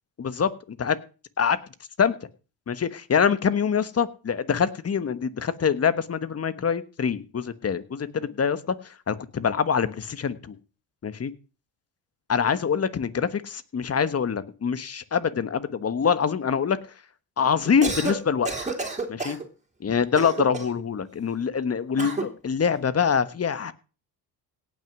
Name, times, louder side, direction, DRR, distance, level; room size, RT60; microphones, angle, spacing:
voice 1, 0.2-1.0 1.4-1.6 2.0-2.2 2.7-10.5 11.0-11.3 12.3-16.8 17.4-18.7 19.1-19.4 19.8-23.7, left 6 dB, 35° left, 14 dB, 1.3 m, -25 dB
Cough, 17.6-18.2 18.4-19.4 20.1-20.8 22.0-22.3, right 3 dB, 15° right, 3.4 m, -30 dB
17.5 x 6.3 x 6.1 m, 0.35 s
supercardioid pair, 70°, 44 cm